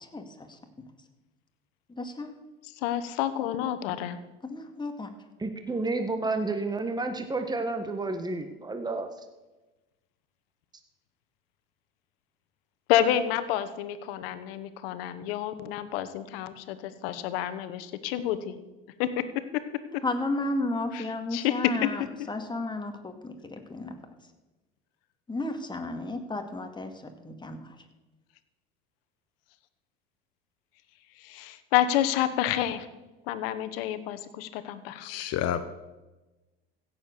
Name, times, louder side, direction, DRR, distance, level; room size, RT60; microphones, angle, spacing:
voice 1, 0.5-0.9 1.9-2.4 4.4-5.1 20.0-24.0 25.3-27.8, left 2 dB, 15° left, 5 dB, 2.3 m, -33 dB
voice 2, 2.8-4.2 12.9-18.6 19.0-19.2 20.9-21.0 21.3-21.9 31.2-32.9 33.3-35.1, left 11 dB, 75° left, 13 dB, 1.2 m, -29 dB
voice 3, 5.4-9.1, right 3 dB, 15° right, 7 dB, 1.5 m, -30 dB
voice 4, 35.0-35.7, left 10 dB, 60° left, 11 dB, 1.0 m, -30 dB
16.0 x 7.6 x 6.7 m, 1.1 s
hypercardioid pair, 75°, 29 cm